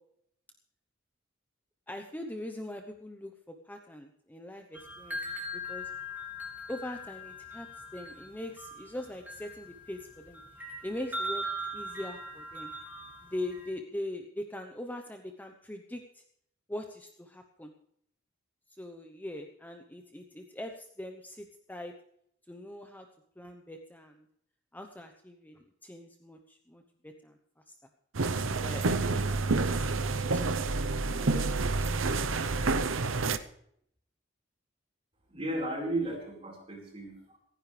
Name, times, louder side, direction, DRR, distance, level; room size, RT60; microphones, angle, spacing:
voice 1, 1.9-5.9 6.7-7.7 7.9-10.4 10.8-11.4 11.7-12.7 13.2-16.2 16.7-17.7 18.8-21.9 22.5-23.1 23.4-24.2 24.7-27.4 27.7-27.8 28.6-30.7 31.2-32.0, left 1 dB, 10° left, 5 dB, 0.9 m, -42 dB
sound 1, 4.7-13.7, equal, 10° right, 3.9 m, -40 dB
sound 2, 28.1-33.4, right 3 dB, 85° right, 0.8 m, -28 dB
voice 2, 35.3-37.4, right 1 dB, 30° right, -1 dB, 4.7 m, -34 dB
26.5 x 10.0 x 3.3 m, 0.70 s
head